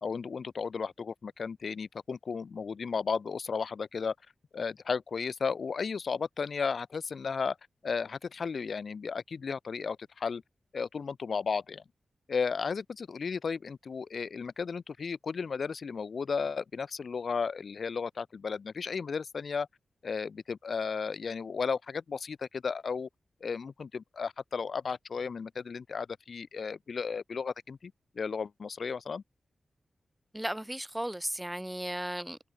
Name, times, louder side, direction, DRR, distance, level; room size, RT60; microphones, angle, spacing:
voice 1, 0.0-4.1 4.5-7.6 7.8-10.4 10.7-11.8 12.3-19.7 20.0-23.1 23.4-29.2, left 5 dB, 55° left, 1.8 m, -34 dB
voice 2, 30.3-32.4, right 1 dB, 5° right, 0.8 m, -35 dB
wide cardioid pair, 155°, 0 cm